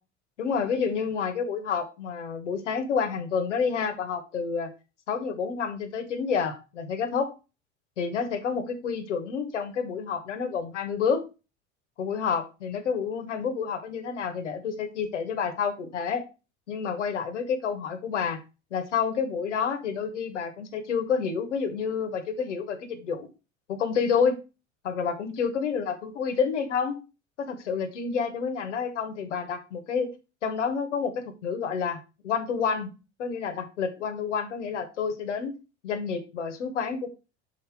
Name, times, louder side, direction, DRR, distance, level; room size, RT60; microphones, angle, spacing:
voice 1, 0.4-4.7 5.1-7.3 8.0-11.2 12.0-16.2 16.7-18.4 18.7-23.3 23.7-24.4 24.8-27.0 27.4-30.1 30.4-32.9 33.2-35.5 35.8-37.1, left 6 dB, 85° left, 6 dB, 1.2 m, -29 dB
5.7 x 4.6 x 4.7 m, 0.30 s
hypercardioid pair, 70°, 35 cm